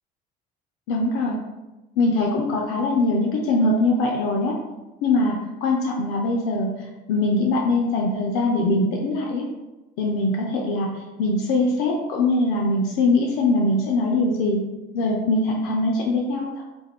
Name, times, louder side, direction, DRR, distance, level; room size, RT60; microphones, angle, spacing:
voice 1, 0.9-1.4 2.0-4.6 5.0-6.8 7.1-9.5 10.0-14.6 14.9-16.6, left 2 dB, 80° left, 0 dB, 0.4 m, -22 dB
2.3 x 2.1 x 3.4 m, 1.1 s
supercardioid pair, 85°, 21 cm